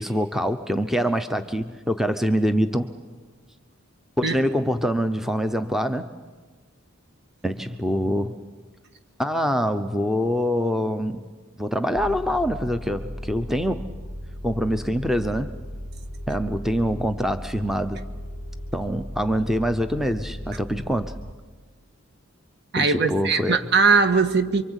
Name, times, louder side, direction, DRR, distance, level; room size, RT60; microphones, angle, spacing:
voice 1, 0.0-2.9 4.2-6.1 7.4-8.4 9.2-11.2 11.6-13.9 14.4-15.5 16.3-18.0 18.7-21.1 22.8-23.6, equal, ahead, 8 dB, 0.7 m, -24 dB
sound 1, 11.9-21.3, equal, 30° right, 1.3 m, -36 dB
voice 2, 22.7-24.6, right 4 dB, 55° right, 8 dB, 1.6 m, -20 dB
27.0 x 24.5 x 8.2 m, 1.4 s
head